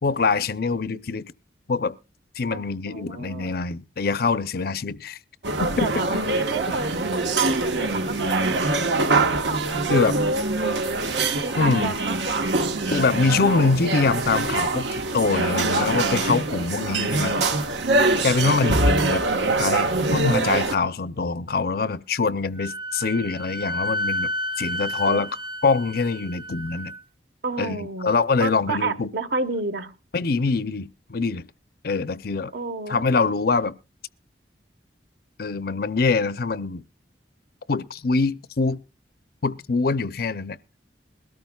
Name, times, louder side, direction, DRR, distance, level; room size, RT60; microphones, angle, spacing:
voice 1, 0.0-1.3 1.7-1.9 2.4-5.2 5.6-5.7 6.0-6.1 9.9-10.1 11.6-11.9 12.9-17.3 18.2-19.2 19.6-24.3 24.6-25.3 25.6-26.9 27.6-29.1 30.1-31.4 31.8-32.5 32.9-33.7 35.4-36.8 37.7-38.8 39.4-40.6, left 4 dB, 55° left, 0.6 m, -24 dB
voice 2, 2.5-3.6 5.6-9.1 9.5-9.6 9.9-11.0 11.4-12.7 18.3-18.9 25.1-25.2 27.4-28.1 28.4-29.9 32.5-33.1, right 3 dB, 65° right, 1.3 m, -30 dB
sound 1, 5.4-20.7, right 2 dB, 85° right, 1.4 m, -24 dB
Wind instrument woodwind instrument, 22.6-27.0, left 1 dB, 30° right, 0.6 m, -31 dB
21.5 x 13.5 x 2.3 m
head